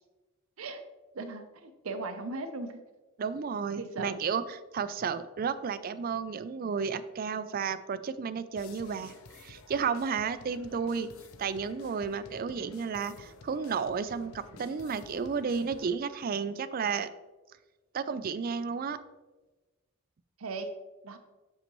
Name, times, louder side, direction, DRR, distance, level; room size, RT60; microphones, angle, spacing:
voice 1, 1.1-2.8 3.8-4.2 20.4-20.7 21.0-21.2, right 3 dB, 80° right, 8 dB, 0.7 m, -38 dB
voice 2, 3.2-11.1 11.4-17.1 17.9-19.0, right 6 dB, 40° right, 14 dB, 0.3 m, -32 dB
sound 1, 8.6-16.0, left 3 dB, 80° left, 0.6 m, -52 dB
7.8 x 6.4 x 3.0 m, 1.2 s
head